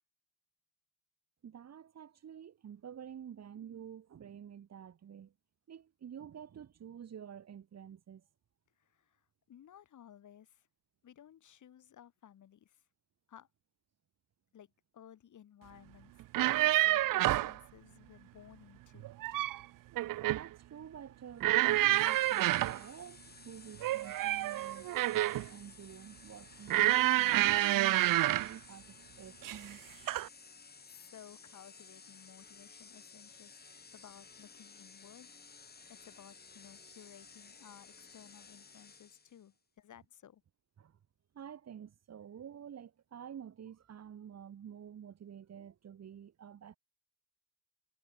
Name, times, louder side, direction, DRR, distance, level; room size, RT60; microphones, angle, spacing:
voice 1, 1.4-5.3 5.7-8.2 20.3-29.8 40.8-41.0 41.3-46.8, right 8 dB, 45° right, 2.4 m, -49 dB
voice 2, 8.8-10.7 11.0-12.9 13.3-13.5 14.5-16.2 16.6-19.1 30.4-33.6 33.9-35.3 35.9-40.4, left 10 dB, 55° left, 3.5 m, -57 dB
sound 1, 16.2-17.6 19.0-19.6 20.0-20.5 21.4-22.8 23.8-25.5 26.7-28.5 29.4-29.7 30.1-30.3, right 15 dB, 65° right, 0.6 m, -28 dB
sound 2, 21.9-39.5, left 5 dB, 25° left, 4.7 m, -56 dB
cardioid pair, 140°, 35 cm